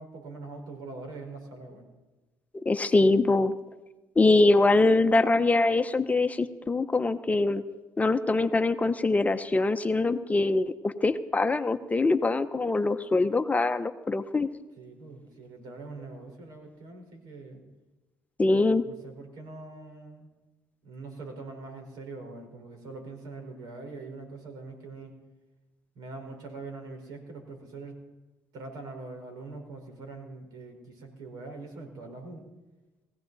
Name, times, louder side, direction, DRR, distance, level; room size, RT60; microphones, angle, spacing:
voice 1, 0.0-1.9 14.8-17.6 18.8-20.3 20.8-25.2 25.9-28.0 28.5-32.4, right 3 dB, 75° right, 4 dB, 4.5 m, -43 dB
voice 2, 2.5-3.5 4.2-7.6 8.0-14.5 18.4-18.8, left 2 dB, 20° left, 9 dB, 0.8 m, -23 dB
21.0 x 16.0 x 4.1 m, 1.1 s
supercardioid pair, 80°, 7 cm